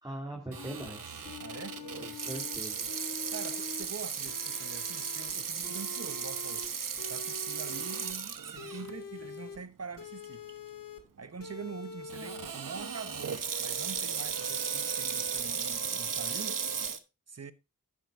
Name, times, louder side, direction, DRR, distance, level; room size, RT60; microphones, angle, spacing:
voice 1, 0.0-1.3 2.0-2.9, right 1 dB, 15° right, 2.8 m, -41 dB
Water tap faucet / Sink (filling or washing), 0.5-8.9 9.4-9.5 10.2-10.5 12.1-17.0, right 6 dB, 80° right, 1.0 m, -36 dB
sound 1, 0.6-0.9 1.2-2.6 2.9-3.9 4.3-5.3 5.6-6.7 7.0-8.1 8.6-9.6 10.0-11.0 11.4-12.5 12.8-14.0 14.3-15.4 15.7-16.9, left 2 dB, 80° left, 2.3 m, -45 dB
voice 2, 1.4-1.8 3.3-6.7 7.1-10.5 11.2-16.6 17.3-17.5, right 5 dB, 50° right, 1.0 m, -44 dB
11.5 x 8.6 x 2.6 m
wide cardioid pair, 70°, 32 cm